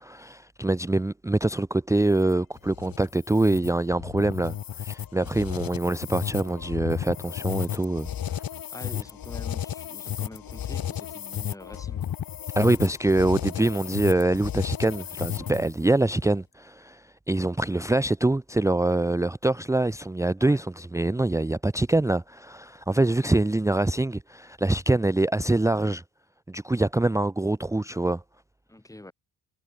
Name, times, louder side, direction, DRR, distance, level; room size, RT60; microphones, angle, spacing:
voice 1, 0.0-8.4 12.6-26.0 26.5-28.2, right 2 dB, 10° right, 0.8 m, -24 dB
sound 1, 2.0-15.8, left 10 dB, 60° left, 2.9 m, -33 dB
voice 2, 8.7-12.1 16.2-16.3 20.4-20.6 28.7-29.1, left 1 dB, 10° left, 7.1 m, -45 dB
cardioid pair, 100°, 39 cm